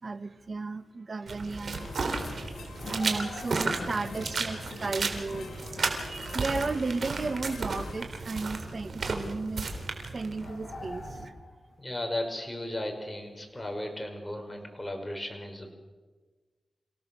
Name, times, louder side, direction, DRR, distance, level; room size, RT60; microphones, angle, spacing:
voice 1, 0.0-1.9 2.9-5.5 6.0-9.7 10.1-11.3, right 3 dB, 50° right, 12 dB, 1.4 m, -34 dB
sound 1, 1.3-11.3, right 3 dB, 65° right, 3.6 m, -34 dB
sound 2, 1.7-8.1, left 4 dB, 90° left, 2.2 m, -45 dB
sound 3, 2.8-4.5 4.8-4.9 7.4-8.1 8.5-8.8 10.4-11.8, left 2 dB, 40° left, 4.4 m, -47 dB
voice 2, 11.8-15.7, left 1 dB, 15° left, 3 dB, 5.5 m, -35 dB
28.5 x 17.0 x 7.1 m, 1.3 s
cardioid pair, 70°, 0 cm